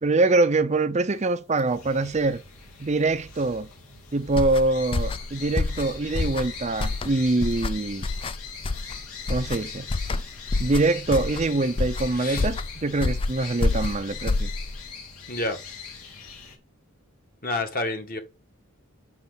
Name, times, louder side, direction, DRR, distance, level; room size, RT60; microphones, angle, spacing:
voice 1, 0.0-2.4 2.8-3.7 4.1-8.1 9.3-9.9 10.6-14.5, right 2 dB, 30° right, 0.6 m, -24 dB
sound 1, 1.7-16.6, left 6 dB, 90° left, 2.9 m, -41 dB
sound 2, 4.3-14.9, left 3 dB, 25° left, 0.3 m, -28 dB
voice 2, 12.1-12.5 15.3-15.6 17.4-18.2, left 2 dB, 40° left, 1.5 m, -29 dB
7.2 x 6.3 x 3.9 m
head